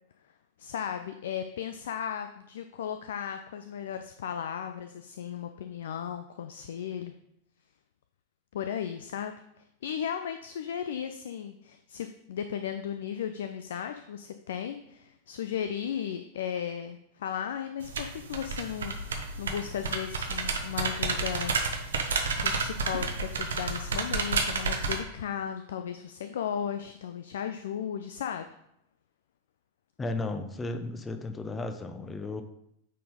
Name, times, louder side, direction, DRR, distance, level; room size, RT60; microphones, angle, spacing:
voice 1, 0.6-7.1 8.5-21.5 22.4-28.5, left 8 dB, 60° left, 7 dB, 0.4 m, -35 dB
sound 1, 17.8-25.0, right 4 dB, 65° right, 0.9 m, -31 dB
voice 2, 30.0-32.4, left 2 dB, 15° left, 8 dB, 0.7 m, -34 dB
9.2 x 4.2 x 3.7 m, 0.77 s
figure-of-eight pair, 90°, 0 cm